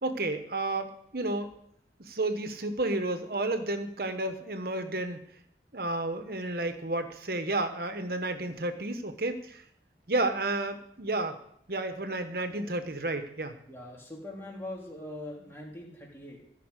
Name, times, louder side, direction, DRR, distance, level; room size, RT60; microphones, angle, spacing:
voice 1, 0.0-1.5 2.1-5.2 5.7-9.6 10.1-11.4 11.7-13.6, right 2 dB, 55° right, 8 dB, 1.2 m, -31 dB
voice 2, 13.7-16.4, left 1 dB, 15° left, -3 dB, 3.1 m, -42 dB
15.0 x 5.9 x 8.2 m, 0.71 s
head